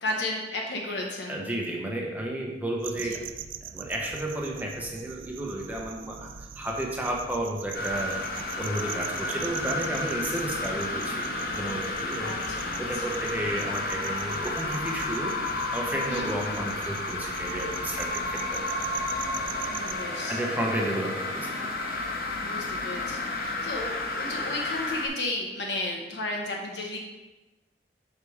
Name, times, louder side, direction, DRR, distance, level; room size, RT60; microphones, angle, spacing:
voice 1, 0.0-1.4 3.0-3.1 12.2-13.0 16.1-16.7 19.7-20.4 22.4-27.0, left 2 dB, 80° left, 0 dB, 1.1 m, -34 dB
voice 2, 1.3-3.2 3.7-12.3 12.8-18.8 20.3-21.7, right 1 dB, 10° right, -1 dB, 0.9 m, -32 dB
sound 1, 2.8-20.0, right 8 dB, 50° right, 0.3 m, -42 dB
sound 2, 7.7-25.1, left 2 dB, 55° left, 0.8 m, -32 dB
5.8 x 5.1 x 4.8 m, 1.1 s
head